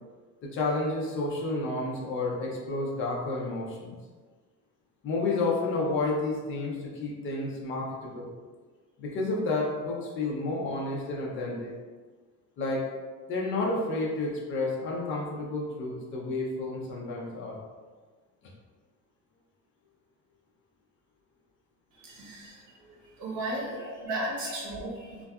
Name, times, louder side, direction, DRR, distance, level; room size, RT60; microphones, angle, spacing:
voice 1, 0.4-4.0 5.0-8.3 9.0-11.7 12.6-12.8 13.3-17.6 23.7-24.0 24.4-24.6 25.1-25.2, left 2 dB, 35° left, -2 dB, 0.4 m, -31 dB
voice 2, 22.0-22.6 22.9-25.2, right 1 dB, 75° right, -4 dB, 0.9 m, -35 dB
2.7 x 2.2 x 2.2 m, 1.4 s
cardioid pair, 180°, 36 cm